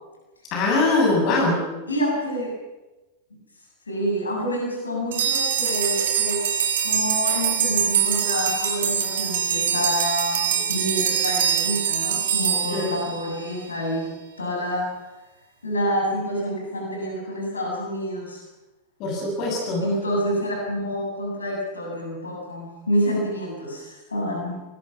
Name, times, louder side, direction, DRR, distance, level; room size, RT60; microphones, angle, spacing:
voice 1, 0.5-1.6 12.7-12.9 19.0-19.8, left 2 dB, 40° left, 0 dB, 7.2 m, -22 dB
voice 2, 1.9-2.5 3.9-6.4 6.8-14.1 14.4-14.9 15.6-18.4 19.8-24.6, equal, 75° left, -1 dB, 7.4 m, -27 dB
sound 1, 5.1-13.6, right 8 dB, 60° right, 2.8 m, -24 dB
23.5 x 20.5 x 5.9 m, 1.1 s
figure-of-eight pair, 90°, 0 cm